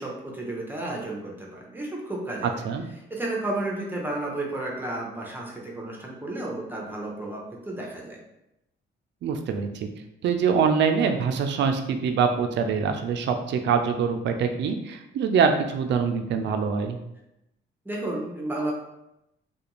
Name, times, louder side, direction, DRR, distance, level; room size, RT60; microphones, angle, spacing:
voice 1, 0.0-2.6 3.1-8.2 17.8-18.7, right 2 dB, 10° right, -2 dB, 0.7 m, -32 dB
voice 2, 2.4-2.8 9.2-9.9 10.2-17.0, right 6 dB, 65° right, 6 dB, 0.4 m, -24 dB
2.4 x 2.3 x 3.0 m, 0.87 s
cardioid pair, 90°, 20 cm